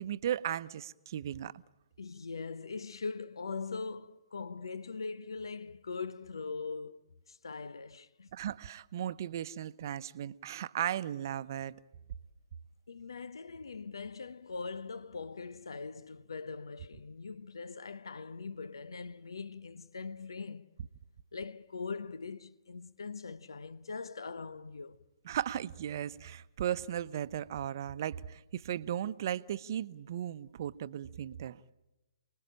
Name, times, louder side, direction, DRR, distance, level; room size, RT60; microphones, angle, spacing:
voice 1, 0.0-1.5 8.3-11.7 25.2-31.7, right 10 dB, 50° right, 0.8 m, -36 dB
voice 2, 2.0-7.0 7.3-8.3 12.9-20.7 21.3-25.0, left 4 dB, 75° left, 1.0 m, -41 dB
29.5 x 20.5 x 8.9 m
figure-of-eight pair, 130°, 2 cm